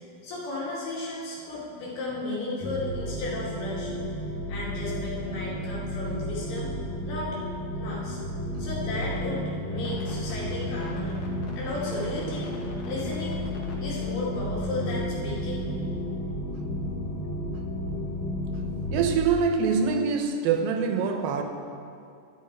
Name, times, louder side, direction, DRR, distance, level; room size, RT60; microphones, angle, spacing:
voice 1, 0.2-3.9 4.5-6.7 7.0-7.4 7.8-8.2 8.6-11.1 11.6-12.5 12.8-13.5 13.8-15.6, left 2 dB, 90° left, -6 dB, 4.4 m, -34 dB
sound 1, 2.6-19.2, equal, 70° left, 3.0 m, -32 dB
voice 2, 18.9-21.4, right 5 dB, 80° right, 5 dB, 2.6 m, -24 dB
11.5 x 11.0 x 4.6 m, 2.5 s
omnidirectional pair, 4.3 m